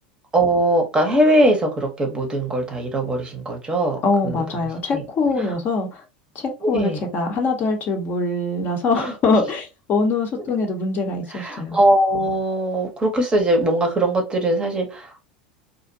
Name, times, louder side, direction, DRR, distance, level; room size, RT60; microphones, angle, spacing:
voice 1, 0.3-4.0 4.2-4.4 4.9-5.0 5.4-5.6 6.6-7.0 9.0-9.1 11.3-15.2, right 1 dB, 20° right, 0.7 m, -21 dB
voice 2, 4.0-6.0 6.3-11.8, left 3 dB, 40° left, 0.7 m, -23 dB
2.5 x 2.1 x 2.5 m
figure-of-eight pair, 80°, 5 cm